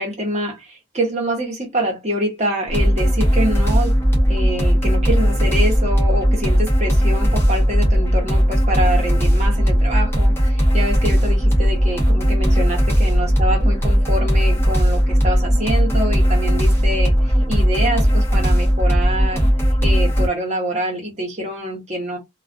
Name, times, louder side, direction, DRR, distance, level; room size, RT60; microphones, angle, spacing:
voice 1, 0.0-3.9 4.3-19.5 19.8-22.2, right 1 dB, 30° right, 1.0 m, -25 dB
sound 1, 2.7-20.3, equal, 10° left, 0.7 m, -17 dB
2.4 x 2.3 x 2.4 m
head